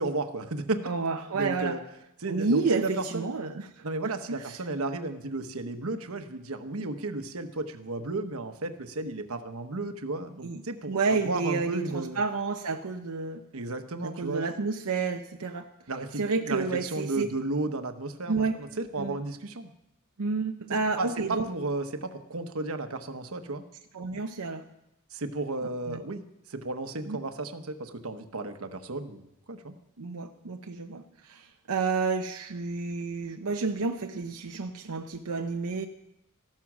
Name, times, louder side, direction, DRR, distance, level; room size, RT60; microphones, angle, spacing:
voice 1, 0.0-0.8 1.3-1.8 2.2-3.3 3.8-12.2 13.5-14.5 15.9-19.7 21.0-23.6 25.1-26.2 26.5-29.7, right 2 dB, 70° right, 8 dB, 1.1 m, -34 dB
voice 2, 0.8-1.8 2.3-4.6 10.4-10.6 10.9-13.4 14.0-15.7 16.2-17.3 18.3-18.6 19.0-19.2 20.2-21.5 23.9-24.6 25.9-26.0 27.1-27.2 30.0-35.9, right 4 dB, 90° right, 4 dB, 0.8 m, -30 dB
15.0 x 12.0 x 6.2 m, 0.87 s
head